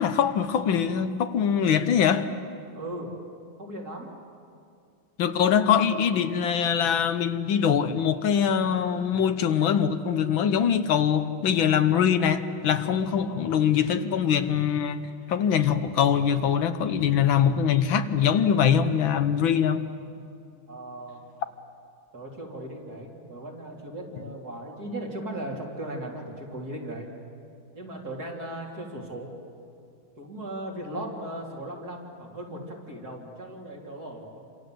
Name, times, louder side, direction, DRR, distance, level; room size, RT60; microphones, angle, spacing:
voice 1, 0.0-2.3 5.2-15.0 15.3-19.8, left 8 dB, 70° left, 1.7 m, -23 dB
voice 2, 2.7-3.1 3.6-4.1 20.7-21.2 22.1-27.1 27.7-29.3 30.2-34.3, right 1 dB, 45° right, 4.0 m, -37 dB
28.5 x 26.5 x 7.8 m
omnidirectional pair, 2.3 m